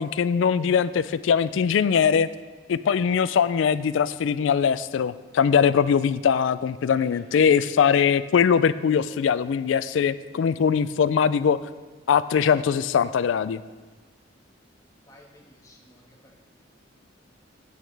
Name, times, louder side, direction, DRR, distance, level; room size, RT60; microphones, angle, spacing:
voice 1, 0.0-2.3 2.7-11.6 12.1-13.6, left 7 dB, 75° left, 16 dB, 0.3 m, -21 dB
voice 2, 7.1-7.5 15.1-16.4, left 1 dB, 20° left, -1 dB, 1.5 m, -53 dB
9.2 x 8.5 x 3.3 m, 1.4 s
head